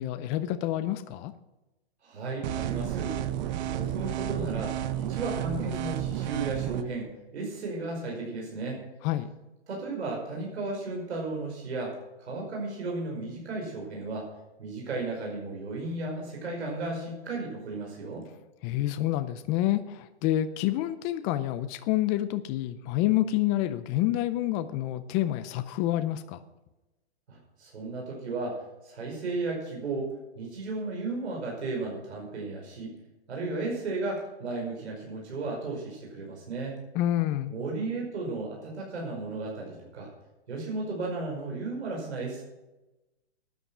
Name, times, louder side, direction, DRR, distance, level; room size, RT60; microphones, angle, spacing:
voice 1, 0.0-1.3 9.0-9.3 18.6-26.4 36.9-37.5, left 14 dB, 20° left, 11 dB, 0.5 m, -28 dB
voice 2, 2.0-3.2 3.6-8.8 9.7-14.3 14.6-18.2 27.3-30.1 30.4-32.9 33.3-36.8 37.5-40.1 40.5-42.4, right 3 dB, 80° right, -1 dB, 5.2 m, -34 dB
sound 1, 2.4-6.8, right 12 dB, 40° right, 0.9 m, -31 dB
13.0 x 9.8 x 6.1 m, 1.0 s
hypercardioid pair, 140°, 33 cm